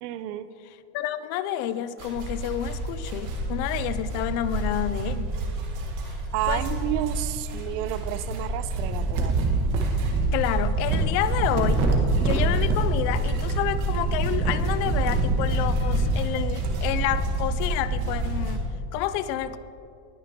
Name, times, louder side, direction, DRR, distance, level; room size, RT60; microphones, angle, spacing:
voice 1, 0.0-0.5 6.3-9.6, right 13 dB, 80° right, 13 dB, 0.8 m, -31 dB
voice 2, 0.9-5.3 6.5-6.6 10.3-11.9 12.2-18.7 18.9-19.6, left 11 dB, 50° left, 14 dB, 0.5 m, -29 dB
sound 1, 2.0-18.6, right 2 dB, 40° right, 1.7 m, -26 dB
20.0 x 9.7 x 3.7 m, 2.5 s
cardioid pair, 170°, 46 cm